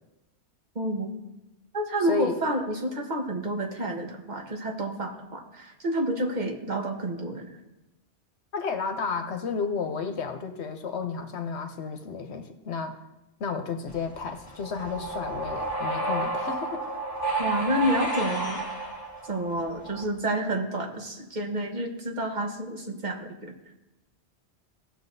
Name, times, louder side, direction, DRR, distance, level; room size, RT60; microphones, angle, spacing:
voice 1, 0.7-1.2 1.7-7.5 17.4-18.6 19.2-23.5, right 1 dB, 45° right, 2 dB, 1.3 m, -29 dB
voice 2, 2.1-2.4 8.5-13.0 13.4-16.8, left 5 dB, 80° left, 6 dB, 1.1 m, -32 dB
sound 1, 13.9-20.0, right 2 dB, 20° left, 1.1 m, -31 dB
16.5 x 6.5 x 2.7 m, 0.96 s
omnidirectional pair, 1.1 m